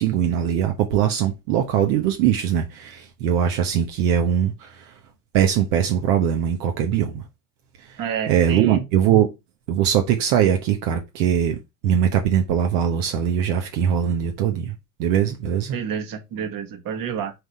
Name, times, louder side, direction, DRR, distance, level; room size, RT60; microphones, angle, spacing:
voice 1, 0.0-4.9 5.3-7.2 8.3-9.3 9.7-11.6 11.8-14.7 15.0-15.8, right 9 dB, 70° right, 1.2 m, -21 dB
voice 2, 8.0-8.8 15.7-17.3, right 8 dB, 45° right, 1.7 m, -29 dB
5.1 x 4.0 x 4.9 m
hypercardioid pair, 90°, 47 cm